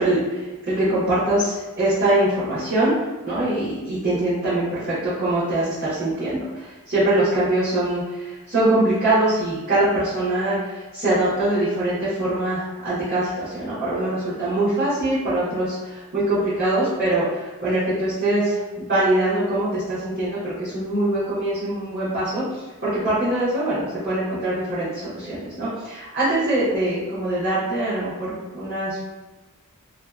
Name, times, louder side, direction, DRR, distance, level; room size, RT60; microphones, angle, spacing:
voice 1, 0.0-29.0, right 1 dB, 45° right, -15 dB, 1.1 m, -23 dB
2.7 x 2.3 x 2.2 m, 1.2 s
head